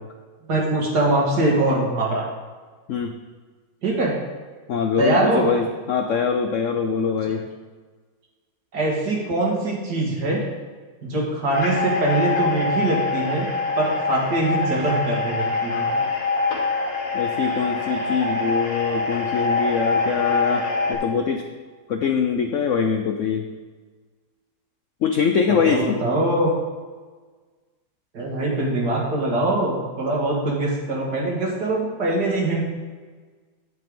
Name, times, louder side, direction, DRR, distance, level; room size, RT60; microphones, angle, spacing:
voice 1, 0.5-2.3 3.8-4.2 5.0-5.5 8.7-10.4 11.0-13.5 13.8-15.9 25.6-26.5 28.1-32.6, right 2 dB, 60° right, -2 dB, 2.4 m, -23 dB
voice 2, 4.7-7.4 17.1-21.4 21.9-23.5 25.0-26.0, left 6 dB, 75° left, 5 dB, 0.7 m, -23 dB
sound 1, 11.5-20.9, left 3 dB, 45° left, 2.2 m, -24 dB
9.6 x 7.8 x 3.8 m, 1.4 s
omnidirectional pair, 2.0 m